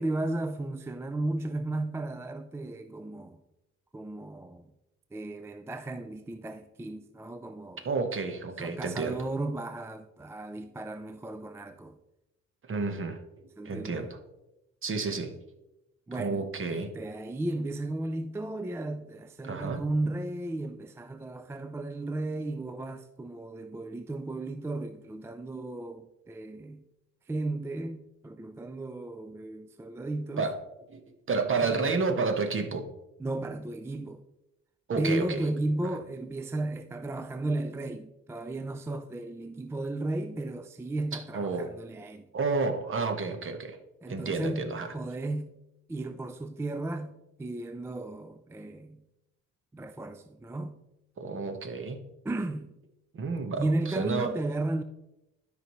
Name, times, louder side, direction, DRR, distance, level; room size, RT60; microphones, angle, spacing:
voice 1, 0.0-3.4 3.9-4.7 5.1-7.8 8.6-12.0 13.6-14.1 16.1-26.9 27.3-30.5 31.6-31.7 33.2-34.2 35.0-42.3 44.0-45.6 45.9-49.0 49.7-50.8 52.2-52.8 53.6-54.8, right 2 dB, 10° right, 0.4 m, -34 dB
voice 2, 7.8-9.3 12.6-13.2 13.6-14.2 14.8-15.3 16.1-16.9 19.4-19.8 30.4-30.5 30.9-31.0 31.3-32.9 34.9-35.4 35.8-35.9 41.1-41.7 42.3-43.8 44.1-44.9 51.2-52.0 53.1-54.3, right 4 dB, 45° right, 1.2 m, -30 dB
12.5 x 5.2 x 3.1 m
cardioid pair, 90°, 30 cm